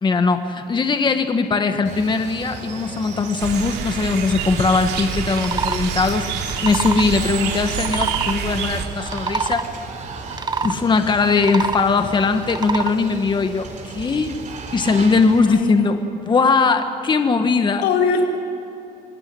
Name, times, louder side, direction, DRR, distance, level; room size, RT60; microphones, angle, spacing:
voice 1, 0.0-6.3 6.6-9.7 10.6-14.3 14.7-16.0 16.2-17.8, left 4 dB, 25° left, 7 dB, 1.4 m, -20 dB
Water, 1.8-15.4, right 5 dB, 45° right, 4.2 m, -35 dB
sound 1, 3.4-8.9, right 7 dB, 75° right, 3.0 m, -27 dB
sound 2, 5.4-5.8 6.4-7.1 7.7-8.4 9.0-9.7 10.3-10.7 11.3-11.9 12.4-12.9, right 4 dB, 25° right, 1.1 m, -25 dB
voice 2, 15.5-16.0 17.8-18.3, left 4 dB, 85° left, 1 dB, 4.2 m, -21 dB
26.5 x 20.5 x 9.6 m, 2.9 s
cardioid pair, 110°, 17 cm